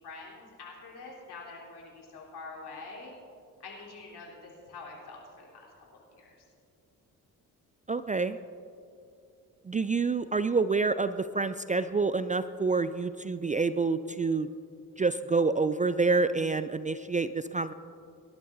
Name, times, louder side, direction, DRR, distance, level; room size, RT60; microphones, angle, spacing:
voice 1, 0.0-3.2 3.6-6.3, left 3 dB, 70° left, -3 dB, 3.9 m, -46 dB
voice 2, 7.9-8.4 9.7-14.5 15.0-17.7, right 4 dB, 20° right, 13 dB, 0.4 m, -27 dB
24.5 x 12.0 x 2.7 m, 2.6 s
hypercardioid pair, 45°, 42 cm